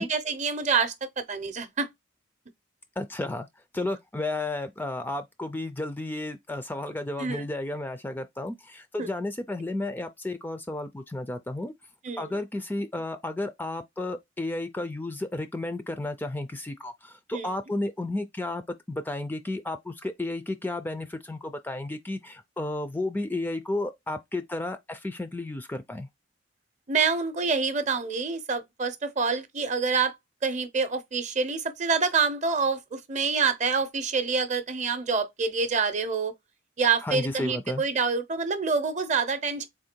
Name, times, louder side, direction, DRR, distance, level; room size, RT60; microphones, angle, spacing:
voice 1, 0.0-1.9 7.2-7.4 9.0-9.1 12.0-12.3 17.3-17.5 26.9-30.2 30.4-36.3 36.8-39.7, right 5 dB, 40° right, 0.6 m, -27 dB
voice 2, 3.0-3.5 3.7-11.7 12.2-26.1 37.0-37.8, left 2 dB, 10° left, 0.3 m, -32 dB
3.7 x 2.7 x 4.4 m
head